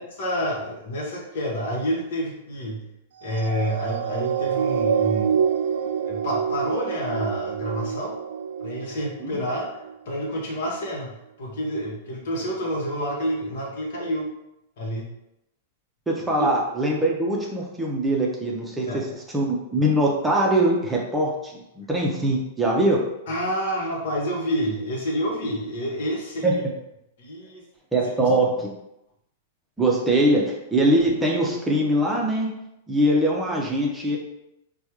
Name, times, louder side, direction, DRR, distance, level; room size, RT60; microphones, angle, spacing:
voice 1, 0.2-2.8 3.2-5.4 6.0-8.2 8.6-9.7 10.1-11.1 11.4-14.3 14.8-15.1 18.9-19.1 23.3-26.6 27.2-27.6 28.2-28.3, equal, 60° left, -2 dB, 1.1 m, -28 dB
sound 1, 3.3-9.9 10.6-10.7, right 7 dB, 65° right, 0.3 m, -27 dB
voice 2, 16.1-19.1 19.3-23.0 26.4-26.6 27.9-28.7 29.8-32.5 32.9-34.2, right 1 dB, 10° right, -2 dB, 0.7 m, -22 dB
4.4 x 2.3 x 2.9 m, 0.86 s
figure-of-eight pair, 100°, 0 cm